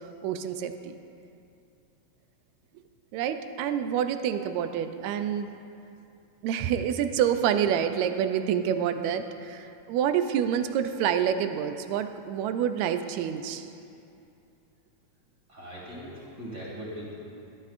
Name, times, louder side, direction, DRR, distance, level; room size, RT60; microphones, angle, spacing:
voice 1, 0.2-1.0 3.1-5.5 6.4-13.7, right 9 dB, 80° right, 9 dB, 1.8 m, -27 dB
voice 2, 15.5-17.2, equal, 30° right, -7 dB, 2.8 m, -40 dB
16.5 x 12.5 x 2.5 m, 2.6 s
omnidirectional pair, 3.3 m